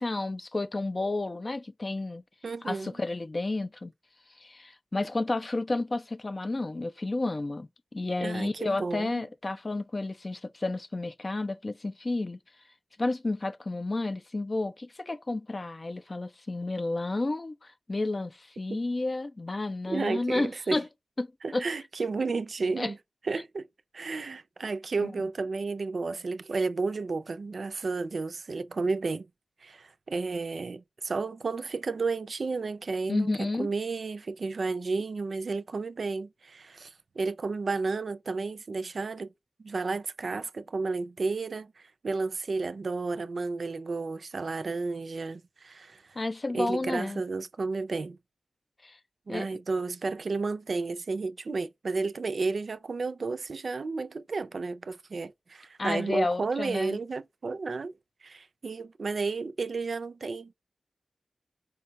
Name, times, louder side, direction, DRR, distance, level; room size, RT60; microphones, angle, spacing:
voice 1, 0.0-2.2 2.6-3.9 4.4-12.4 13.0-20.9 21.2-21.6 22.8-22.9 25.0-25.1 33.1-33.7 46.2-47.2 48.8-49.0 49.3-49.5 55.8-57.0, left 2 dB, 40° left, 0.4 m, -31 dB
voice 2, 2.4-3.0 8.2-9.3 18.7-18.8 19.9-20.8 21.4-23.0 23.2-23.7 23.9-29.3 29.6-39.3 39.6-46.2 46.5-48.2 49.3-58.0 58.2-60.5, right 4 dB, 70° right, 0.4 m, -32 dB
4.5 x 2.2 x 2.6 m
wide cardioid pair, 70°, 0 cm